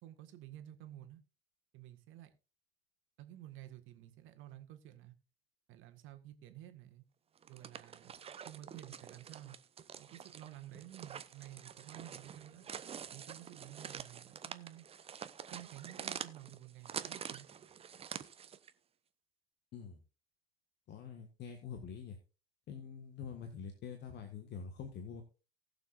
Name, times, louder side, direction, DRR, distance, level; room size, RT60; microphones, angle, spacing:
voice 1, 0.0-1.2 1.7-2.3 3.2-5.1 5.7-7.0 7.5-9.6 10.0-12.7 13.1-14.9 15.5-17.5, right 13 dB, 40° right, 8 dB, 1.7 m, -52 dB
sound 1, 7.4-18.7, right 8 dB, 20° right, 0.7 m, -47 dB
voice 2, 20.9-22.2 22.7-25.2, left 6 dB, 35° left, 6 dB, 1.6 m, -46 dB
19.0 x 7.0 x 2.5 m, 0.32 s
figure-of-eight pair, 85°, 30 cm